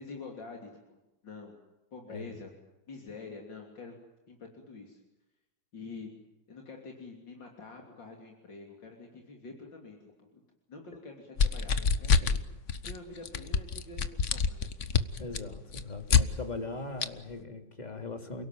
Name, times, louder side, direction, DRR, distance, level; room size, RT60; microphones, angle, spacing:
voice 1, 0.0-1.6 1.9-2.5 2.9-4.0 4.3-5.0 5.7-6.2 6.5-10.4 10.7-12.4 12.8-14.0 14.3-14.9, left 3 dB, 85° left, 1 dB, 3.8 m, -46 dB
sound 1, 11.4-12.4 12.7-13.0 13.3-16.2 17.0-17.1, left 6 dB, 45° left, 1.3 m, -26 dB
voice 2, 15.2-18.5, left 3 dB, 25° left, 5 dB, 3.0 m, -40 dB
29.0 x 17.5 x 9.2 m, 0.96 s
omnidirectional pair, 1.9 m